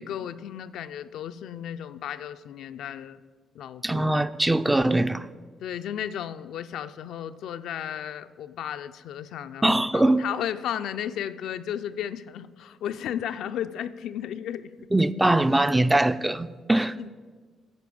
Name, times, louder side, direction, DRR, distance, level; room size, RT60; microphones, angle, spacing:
voice 1, 0.0-3.2 3.5-4.1 5.6-14.7 17.0-17.1, left 10 dB, 80° left, 0.4 m, -34 dB
voice 2, 3.8-5.3 9.6-10.2 14.9-17.0, right 1 dB, 10° right, 0.3 m, -22 dB
9.3 x 5.2 x 6.9 m
cardioid pair, 90°, 0 cm